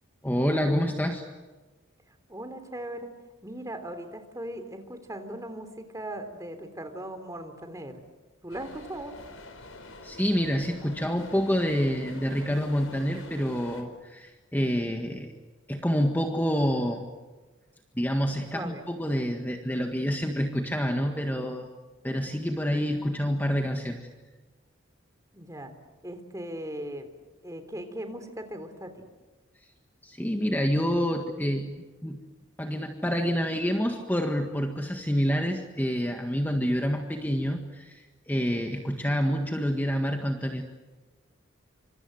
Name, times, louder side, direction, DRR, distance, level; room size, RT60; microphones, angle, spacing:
voice 1, 0.2-1.3 10.0-15.3 15.7-17.0 17.9-21.7 22.0-24.1 30.0-32.2 32.6-40.6, equal, 10° left, 3 dB, 1.7 m, -27 dB
voice 2, 2.3-3.2 3.4-8.0 8.4-9.1 18.5-18.8 25.3-25.7 26.0-27.1 27.4-29.0, right 1 dB, 15° right, 7 dB, 3.2 m, -38 dB
sound 1, 8.5-13.8, left 2 dB, 80° left, 4.8 m, -46 dB
27.5 x 26.0 x 7.9 m, 1.3 s
head